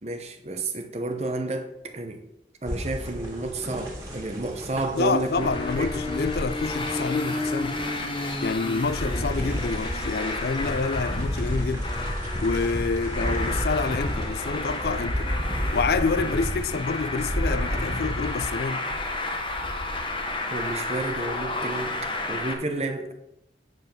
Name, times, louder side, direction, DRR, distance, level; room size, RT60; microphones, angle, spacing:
voice 1, 0.0-2.2 2.6-5.5 5.8-5.9 20.5-23.1, right 2 dB, 35° right, 0.8 m, -31 dB
sound 1, 2.6-18.6, equal, 20° right, 2.2 m, -34 dB
voice 2, 5.0-7.8 8.4-11.9 12.4-15.3 15.7-18.8, left 4 dB, 60° left, 0.4 m, -27 dB
Traffic noise roadway noise, 5.4-22.5, left 2 dB, 30° left, 1.0 m, -30 dB
9.1 x 5.5 x 5.9 m
head